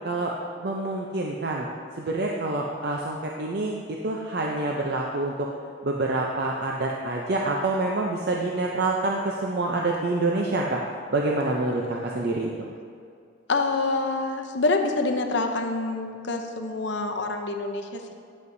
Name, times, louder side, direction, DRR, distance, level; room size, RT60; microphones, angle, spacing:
voice 1, 0.0-1.7 1.9-5.5 5.8-10.8 11.1-12.7, right 2 dB, 50° right, -1 dB, 0.5 m, -27 dB
voice 2, 13.5-18.2, left 3 dB, 60° left, 5 dB, 0.6 m, -26 dB
9.3 x 8.3 x 2.6 m, 2.3 s
head